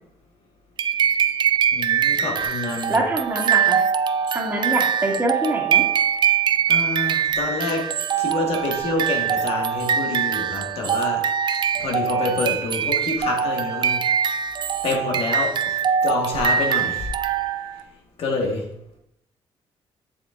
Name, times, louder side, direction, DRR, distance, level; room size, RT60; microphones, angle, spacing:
sound 1, 0.8-17.8, right 8 dB, 50° right, 0.4 m, -23 dB
voice 1, 1.7-3.0 6.7-7.9 8.2-11.2 11.8-14.3 14.8-17.1 18.2-18.7, left 3 dB, 70° left, 0 dB, 1.5 m, -27 dB
voice 2, 2.9-3.8 4.3-5.8, right 1 dB, 20° right, -1 dB, 1.7 m, -24 dB
7.3 x 6.5 x 2.5 m, 0.78 s
cardioid pair, 90°, 10 cm